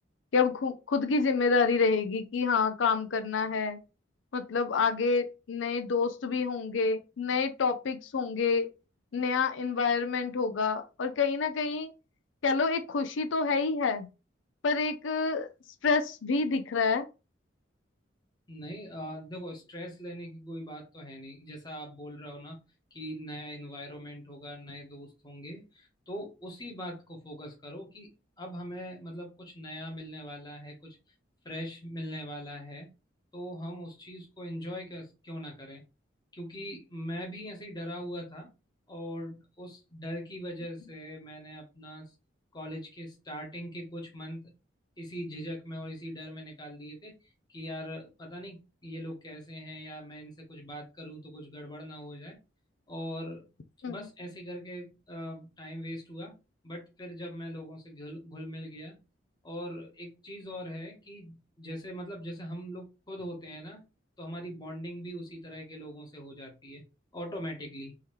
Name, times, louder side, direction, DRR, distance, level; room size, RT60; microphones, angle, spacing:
voice 1, 0.3-3.8 4.3-8.7 9.1-11.9 12.4-14.1 14.6-15.5 15.8-17.1 53.8-54.1, left 4 dB, 90° left, 0.5 m, -28 dB
voice 2, 18.5-22.6 22.9-28.1 28.4-31.0 31.4-32.9 33.3-35.8 36.3-38.5 38.9-42.1 42.5-44.5 45.0-47.1 47.5-52.4 52.9-53.4 53.9-56.3 56.6-59.0 59.4-63.8 64.2-66.8 67.1-67.9, equal, 20° left, 1.2 m, -41 dB
3.7 x 2.8 x 3.2 m
head